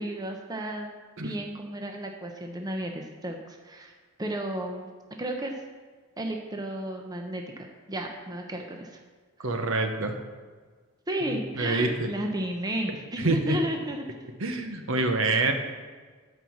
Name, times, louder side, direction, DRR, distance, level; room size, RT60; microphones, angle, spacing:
voice 1, 0.0-3.9 4.2-4.9 5.2-5.5 6.2-9.0 9.4-9.5 11.1-14.0, right 1 dB, 15° right, 2 dB, 0.7 m, -33 dB
voice 2, 9.4-10.1 11.2-12.1 13.2-13.6 14.4-15.5, right 2 dB, 60° right, 5 dB, 1.0 m, -26 dB
9.0 x 5.5 x 7.3 m, 1.5 s
head